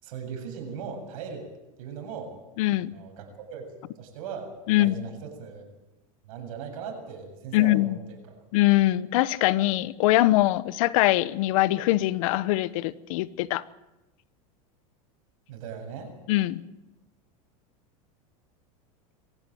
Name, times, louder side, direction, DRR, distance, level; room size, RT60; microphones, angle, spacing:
voice 1, 0.0-1.5 1.8-2.3 2.9-3.6 4.0-5.7 6.2-8.4 15.5-16.1, right 6 dB, 75° right, 4 dB, 7.6 m, -39 dB
voice 2, 2.6-2.9 4.7-4.9 7.5-8.0 8.5-13.6 16.3-16.6, left 17 dB, 70° left, 17 dB, 1.0 m, -22 dB
23.0 x 15.5 x 9.3 m, 1.0 s
supercardioid pair, 135°, 18 cm